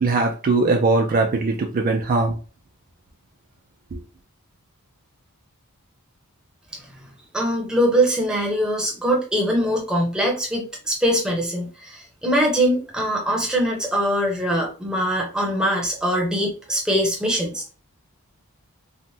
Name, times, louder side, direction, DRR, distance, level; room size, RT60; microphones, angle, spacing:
voice 1, 0.0-2.4 3.9-4.0, right 3 dB, 40° right, 0.3 m, -20 dB
voice 2, 7.3-17.7, equal, 5° right, 0.7 m, -22 dB
3.2 x 2.1 x 2.6 m
head